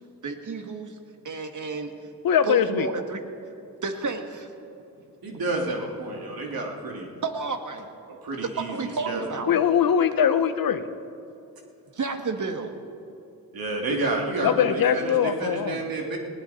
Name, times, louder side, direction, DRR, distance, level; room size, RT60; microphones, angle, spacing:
voice 1, 0.2-1.0 1.2-1.9 2.4-3.2 3.8-4.5 6.3-6.4 7.2-7.9 8.6-9.6 10.2-10.3 11.9-12.7, right 4 dB, 55° right, 6 dB, 1.8 m, -31 dB
voice 2, 2.2-2.9 9.5-10.8 14.4-15.8, left 8 dB, 65° left, 11 dB, 1.0 m, -22 dB
voice 3, 5.2-7.2 8.1-9.4 13.5-16.2, right 2 dB, 70° right, 0 dB, 2.7 m, -30 dB
19.5 x 17.5 x 4.3 m, 2.7 s
cardioid pair, 60°, 37 cm